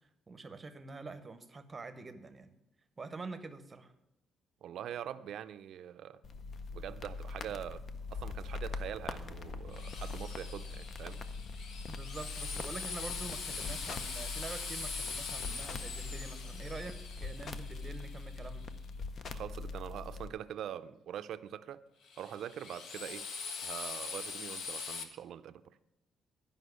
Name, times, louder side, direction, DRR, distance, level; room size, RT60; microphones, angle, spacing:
voice 1, 0.3-2.5 3.0-3.9 11.9-18.7, right 3 dB, 20° right, 0.8 m, -46 dB
voice 2, 4.6-6.2 6.7-7.8 8.1-11.2 19.3-21.8 22.2-23.3 23.6-25.8, right 10 dB, 65° right, 0.5 m, -43 dB
sound 1, 6.2-20.3, left 4 dB, 40° left, 0.6 m, -42 dB
Drill, 9.7-18.6 22.0-25.0, left 5 dB, 65° left, 1.1 m, -42 dB
11.5 x 5.4 x 7.9 m
cardioid pair, 150°, 0 cm